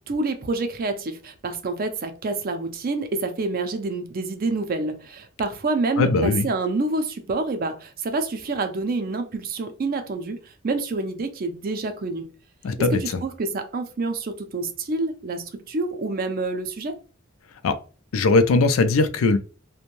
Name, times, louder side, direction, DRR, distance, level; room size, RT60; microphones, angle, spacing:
voice 1, 0.1-12.3 12.8-16.9, right 3 dB, 45° right, 0.4 m, -27 dB
voice 2, 6.0-6.5 12.6-13.2 17.6-17.8 18.1-19.4, left 3 dB, 90° left, 0.4 m, -20 dB
2.5 x 2.1 x 3.0 m
head